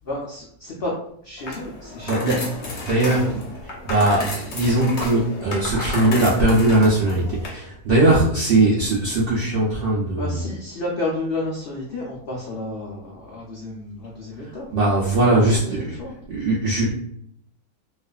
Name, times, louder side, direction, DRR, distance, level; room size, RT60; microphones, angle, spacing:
voice 1, 0.0-0.9 1.2-2.4 3.2-3.4 10.2-14.7 15.3-16.1, left 2 dB, 80° left, -3 dB, 0.5 m, -31 dB
sound 1, 1.4-7.5, left 2 dB, 55° left, 0.8 m, -32 dB
voice 2, 2.0-3.4 3.8-10.4 14.4-15.8 16.3-16.9, right 1 dB, 80° right, -6 dB, 0.5 m, -20 dB
2.5 x 2.4 x 2.3 m, 0.67 s
omnidirectional pair, 1.6 m